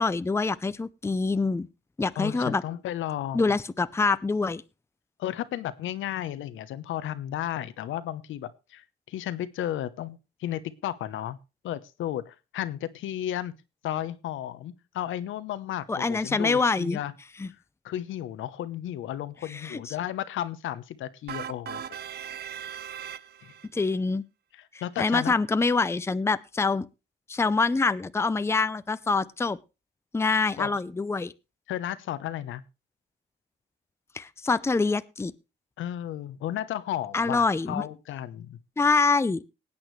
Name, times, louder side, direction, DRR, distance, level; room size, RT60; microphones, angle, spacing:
voice 1, 0.0-1.7 2.0-2.6 3.3-4.6 15.9-17.0 17.4-17.5 19.5-19.9 23.7-24.2 25.0-26.9 27.3-29.6 30.1-31.3 34.1-35.3 37.1-37.8 38.8-39.4, left 4 dB, 15° left, 0.6 m, -25 dB
voice 2, 2.2-3.5 5.2-11.4 11.6-13.5 13.8-17.1 17.8-22.0 23.4-23.5 24.5-25.4 30.6-30.7 31.7-32.6 35.8-38.6, left 12 dB, 80° left, 0.9 m, -33 dB
sound 1, 21.3-23.7, right 9 dB, 55° right, 0.7 m, -38 dB
19.5 x 8.8 x 3.2 m
cardioid pair, 90°, 20 cm